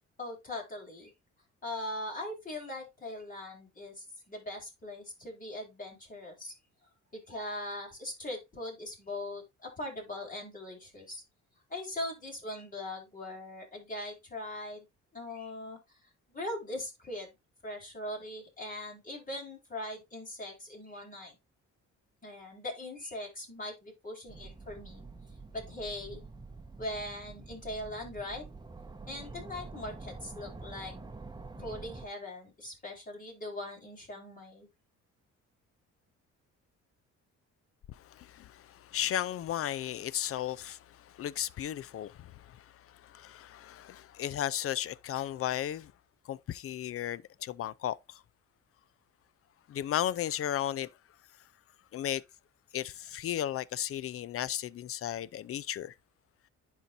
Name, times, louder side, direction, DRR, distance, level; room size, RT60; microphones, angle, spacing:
voice 1, 0.2-1.1 1.6-6.5 7.1-11.2 11.7-14.9 15.1-16.0 16.3-17.3 17.6-21.4 22.2-25.0 25.5-26.2 26.8-28.4 29.1-30.9 31.6-34.7, left 1 dB, 25° left, 4.2 m, -40 dB
sound 1, 24.3-32.1, right 3 dB, 15° right, 1.1 m, -47 dB
voice 2, 37.9-45.9 46.3-48.2 49.7-50.9 51.9-52.2 52.7-55.9, left 11 dB, 50° left, 0.5 m, -35 dB
11.0 x 4.5 x 2.7 m
cardioid pair, 90°, 30 cm